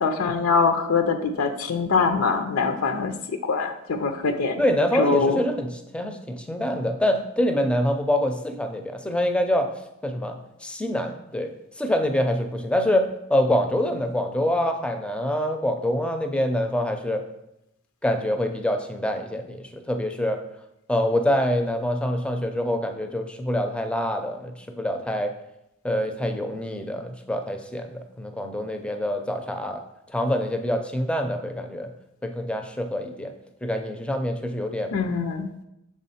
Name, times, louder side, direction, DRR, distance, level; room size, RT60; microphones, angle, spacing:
voice 1, 0.0-3.1 3.5-4.6 5.0-5.4 34.9-35.5, left 4 dB, 80° left, 7 dB, 0.5 m, -23 dB
voice 2, 4.6-9.7 10.0-11.5 11.8-17.2 18.0-20.4 20.9-25.3 25.8-29.8 30.1-31.9 32.2-33.3 33.6-34.9, left 1 dB, 5° left, 5 dB, 0.4 m, -25 dB
6.3 x 3.6 x 4.2 m, 0.84 s
head